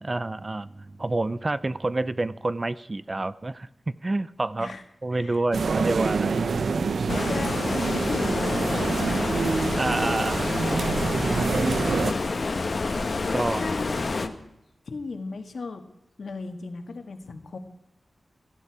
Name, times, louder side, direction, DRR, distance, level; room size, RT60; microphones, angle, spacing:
voice 1, 0.0-4.7 5.0-6.7 9.8-10.8 13.3-13.6, right 2 dB, 30° right, 16 dB, 0.5 m, -28 dB
sound 1, 5.5-12.1, right 4 dB, 90° right, 0.8 m, -26 dB
voice 2, 7.1-9.2 11.9-12.4 13.2-14.3 14.8-15.8 16.2-17.6, left 4 dB, 75° left, 7 dB, 1.7 m, -36 dB
Stream, 7.1-14.3, left 3 dB, 55° left, 1.1 m, -28 dB
17.0 x 14.0 x 4.8 m, 0.87 s
wide cardioid pair, 105°, 0 cm